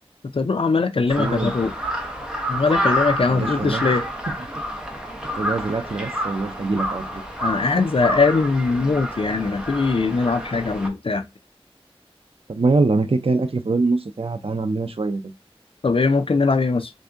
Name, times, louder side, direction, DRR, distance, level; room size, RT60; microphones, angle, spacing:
voice 1, 0.3-1.7 2.5-4.0 7.4-11.2 15.8-16.9, left 4 dB, 60° left, 0.4 m, -21 dB
voice 2, 1.0-1.6 3.3-3.9 5.3-7.2 12.5-15.2, right 3 dB, 70° right, 0.6 m, -23 dB
Crow, 1.1-10.9, equal, 10° right, 0.9 m, -28 dB
3.5 x 2.7 x 3.4 m
wide cardioid pair, 45°, 10 cm